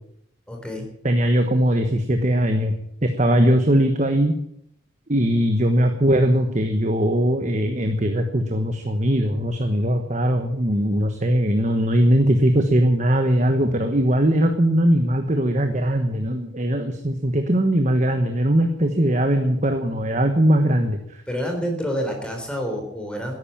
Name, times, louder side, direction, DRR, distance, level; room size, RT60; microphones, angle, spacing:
voice 1, 0.5-0.9 21.3-23.3, equal, 5° left, 2 dB, 3.8 m, -28 dB
voice 2, 1.0-2.7 3.0-4.3 5.1-21.2, right 1 dB, 35° right, 6 dB, 1.2 m, -20 dB
13.5 x 11.5 x 8.8 m, 0.73 s
head